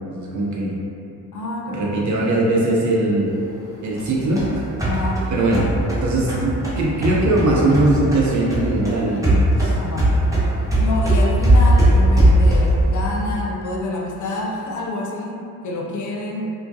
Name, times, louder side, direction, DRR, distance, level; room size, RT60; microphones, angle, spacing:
voice 1, 0.0-0.8 1.7-3.3 3.8-4.7 5.3-5.7 6.0-9.7, right 2 dB, 50° right, -4 dB, 0.6 m, -20 dB
voice 2, 1.3-1.8 4.8-5.2 9.8-10.2 10.7-16.5, left 2 dB, 50° left, -2 dB, 0.5 m, -27 dB
sound 1, 4.0-8.2 8.5-12.9, right 1 dB, 10° right, 0.8 m, -18 dB
2.2 x 2.1 x 2.7 m, 2.6 s
supercardioid pair, 60°, 38 cm